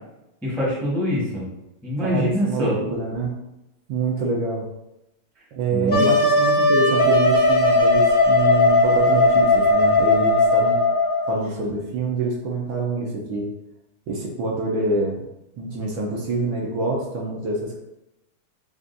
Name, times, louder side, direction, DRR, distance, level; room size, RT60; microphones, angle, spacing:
voice 1, 0.4-1.4 1.8-2.8 5.7-6.1, equal, ahead, -6 dB, 0.8 m, -24 dB
voice 2, 2.0-3.3 3.9-4.7 5.5-10.8 11.3-13.5 14.1-15.2 15.6-17.8, right 3 dB, 70° right, -2 dB, 1.4 m, -26 dB
Wind instrument woodwind instrument, 5.9-11.4, left 2 dB, 40° left, 0.6 m, -17 dB
7.0 x 2.4 x 2.6 m, 0.91 s
omnidirectional pair, 2.4 m